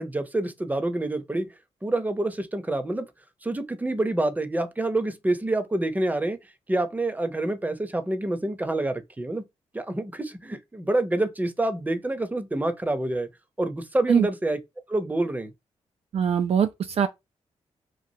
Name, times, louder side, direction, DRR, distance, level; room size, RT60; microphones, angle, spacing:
voice 1, 0.0-1.5 1.8-3.1 3.4-6.4 6.7-9.4 9.7-13.3 13.6-14.6 14.9-15.5, right 2 dB, 15° right, 0.7 m, -27 dB
voice 2, 16.1-17.1, right 7 dB, 55° right, 0.4 m, -22 dB
3.0 x 2.4 x 2.7 m
cardioid pair, 60°, 12 cm